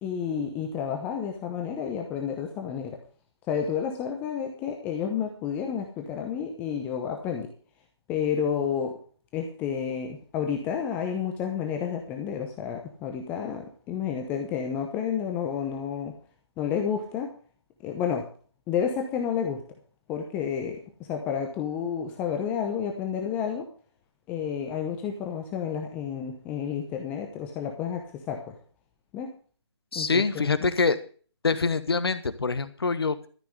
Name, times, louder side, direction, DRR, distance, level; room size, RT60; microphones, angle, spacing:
voice 1, 0.0-3.0 3.5-7.5 8.1-8.9 9.3-16.1 16.6-17.3 17.8-18.3 18.7-19.6 20.1-20.8 21.1-23.7 24.3-28.5 29.1-29.3 29.9-30.5, left 7 dB, 10° left, 3 dB, 0.9 m, -30 dB
voice 2, 29.9-31.0 31.4-33.3, left 4 dB, 60° left, 13 dB, 1.3 m, -25 dB
13.5 x 6.0 x 8.0 m, 0.43 s
figure-of-eight pair, 155°, 15 cm